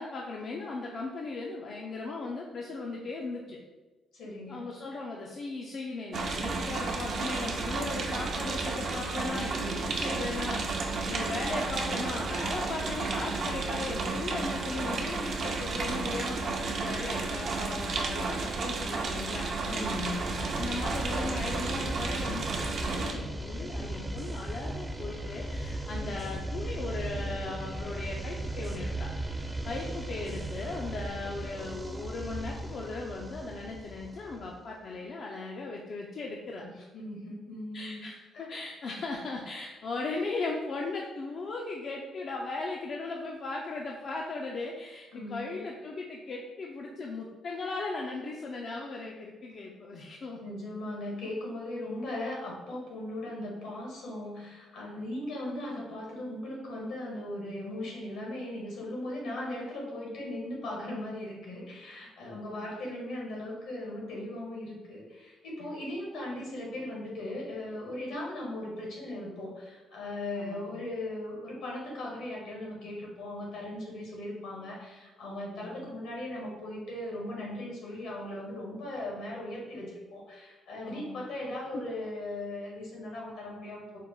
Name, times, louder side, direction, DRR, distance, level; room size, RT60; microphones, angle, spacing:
voice 1, 0.0-3.6 4.5-19.5 20.5-29.1 29.6-36.6 37.7-50.4 62.2-62.7 65.6-65.7 70.3-70.8 75.4-75.9 80.8-81.2 81.7-81.8, left 3 dB, 55° left, -1 dB, 0.4 m, -37 dB
voice 2, 4.1-4.7 19.6-20.4 36.6-38.1 38.3-38.5 45.1-45.6 50.4-84.0, left 1 dB, 85° left, -3 dB, 1.4 m, -38 dB
sound 1, 6.1-23.1, right 3 dB, 60° right, 0.6 m, -32 dB
sound 2, 19.8-34.6, right 1 dB, 10° right, 0.3 m, -37 dB
4.5 x 2.1 x 3.7 m, 1.2 s
cardioid pair, 90°, 0 cm